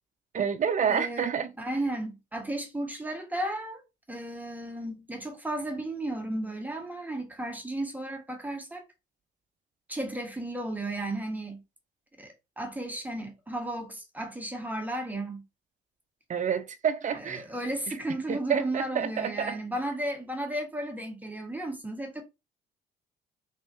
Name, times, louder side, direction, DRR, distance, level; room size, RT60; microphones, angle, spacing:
voice 1, 0.3-1.5 16.3-17.4 18.3-19.6, right 7 dB, 40° right, 0.7 m, -28 dB
voice 2, 0.9-1.3 1.6-3.8 4.1-8.8 9.9-11.6 12.2-15.4 17.1-22.2, right 1 dB, 10° right, 1.5 m, -34 dB
3.6 x 3.2 x 2.7 m
supercardioid pair, 65°, 19 cm